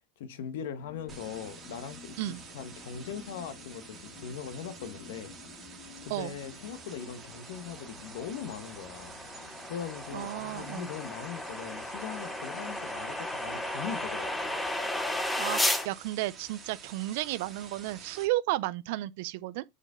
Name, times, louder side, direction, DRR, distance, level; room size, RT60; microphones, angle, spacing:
voice 1, 0.2-5.3 6.0-9.1 9.7-14.6, left 8 dB, 80° left, 1.2 m, -40 dB
sound 1, 0.8-15.4, left 5 dB, 50° left, 2.2 m, -52 dB
sound 2, 1.1-18.3, right 5 dB, 15° right, 2.2 m, -50 dB
sound 3, 7.2-15.9, left 1 dB, 5° left, 0.8 m, -34 dB
voice 2, 10.1-10.9 15.4-19.6, right 17 dB, 60° right, 0.4 m, -33 dB
6.5 x 4.9 x 3.6 m
supercardioid pair, 155°, 0 cm